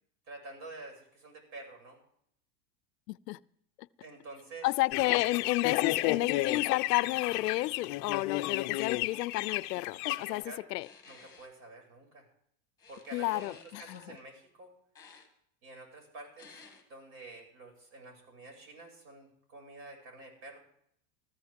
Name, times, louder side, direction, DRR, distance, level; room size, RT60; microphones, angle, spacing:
voice 1, 0.3-2.0 4.0-4.7 10.3-10.6 11.1-12.3 12.9-14.7 15.6-16.6 16.9-20.6, right 2 dB, 45° right, 6.8 m, -48 dB
voice 2, 3.1-3.4 3.8-3.9 4.6-10.9 13.1-14.0, left 18 dB, 85° left, 0.7 m, -31 dB
sound 1, 4.9-10.4, left 17 dB, 40° left, 0.7 m, -32 dB
sound 2, 10.8-11.5 12.8-14.2 14.9-15.3 16.4-16.8, left 5 dB, 10° left, 2.2 m, -54 dB
19.0 x 14.0 x 3.6 m
supercardioid pair, 150°, 47 cm